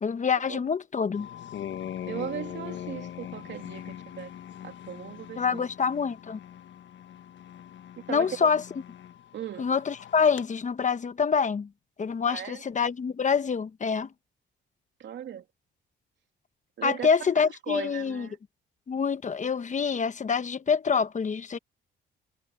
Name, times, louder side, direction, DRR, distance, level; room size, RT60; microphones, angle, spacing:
voice 1, 0.0-1.3 5.4-6.4 8.1-8.6 9.6-11.7 12.0-14.1 16.8-18.3 18.9-21.6, left 6 dB, 40° left, 1.2 m, -26 dB
sound 1, 1.1-10.5, left 10 dB, 70° left, 1.4 m, -41 dB
voice 2, 2.1-4.3 4.6-5.6 8.1-8.5 9.3-9.7 12.3-12.6 15.0-15.4 16.8-18.4, right 9 dB, 65° right, 2.9 m, -38 dB
cardioid pair, 90°, 20 cm